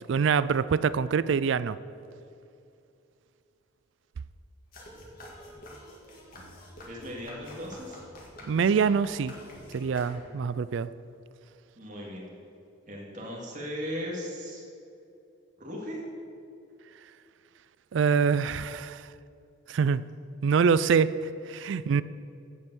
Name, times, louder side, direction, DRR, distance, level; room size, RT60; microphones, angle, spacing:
voice 1, 0.1-1.8 8.4-9.3 9.7-10.9 17.9-19.1 19.7-20.0 20.4-22.0, right 6 dB, 70° right, 16 dB, 0.3 m, -25 dB
sound 1, 4.7-10.5, left 1 dB, 45° left, 2.1 m, -47 dB
voice 2, 6.9-8.0 11.8-12.3 12.9-14.6 15.6-16.0, equal, 40° right, -3 dB, 2.1 m, -37 dB
16.0 x 5.4 x 6.2 m, 2.6 s
head